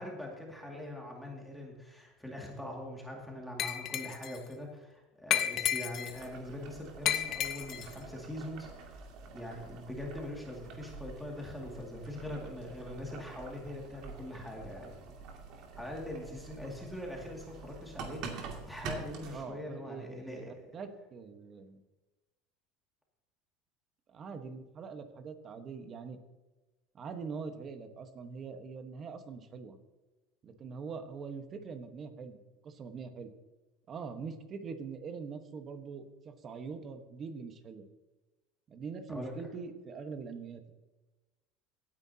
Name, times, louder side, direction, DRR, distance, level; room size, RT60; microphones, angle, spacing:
voice 1, 0.0-9.0 9.3-15.0 15.8-20.5 39.1-39.3, left 1 dB, ahead, -2 dB, 2.3 m, -42 dB
Glass, 3.6-4.4 5.3-6.2 7.1-7.9, left 10 dB, 45° left, 0.8 m, -32 dB
Boiling, 6.1-19.4, right 4 dB, 55° right, 2.4 m, -47 dB
voice 2, 19.3-21.8 24.1-26.2 26.9-29.8 30.4-33.3 33.9-37.9 38.7-40.6, right 5 dB, 30° right, 7 dB, 1.3 m, -43 dB
17.0 x 9.6 x 2.9 m, 1.1 s
supercardioid pair, 140°, 0 cm